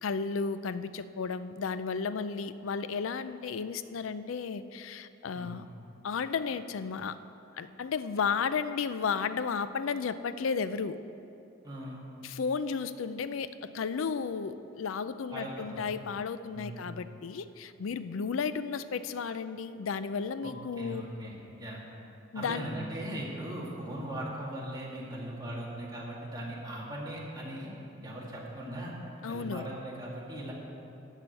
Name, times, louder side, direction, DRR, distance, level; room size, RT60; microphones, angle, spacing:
voice 1, 0.0-5.6 6.0-7.2 7.5-11.0 12.2-21.0 22.3-22.7 29.2-29.7, left 5 dB, 90° left, 13 dB, 0.4 m, -33 dB
voice 2, 11.6-12.0 15.3-15.8 16.5-16.8 20.4-21.3 21.6-21.8 22.3-27.7 28.0-29.0 29.3-30.5, right 1 dB, 20° right, -5 dB, 2.1 m, -39 dB
13.0 x 4.9 x 8.7 m, 2.8 s
head